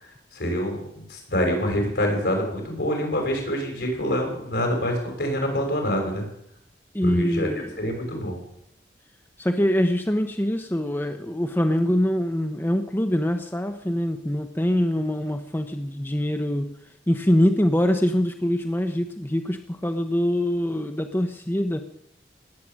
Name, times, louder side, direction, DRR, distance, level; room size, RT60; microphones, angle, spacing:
voice 1, 0.3-6.3 7.0-7.5 7.8-8.4, equal, 70° left, 2 dB, 5.6 m, -26 dB
voice 2, 6.9-7.7 9.4-16.7 17.1-21.8, equal, 15° left, 6 dB, 0.9 m, -24 dB
18.5 x 7.7 x 9.0 m, 0.75 s
head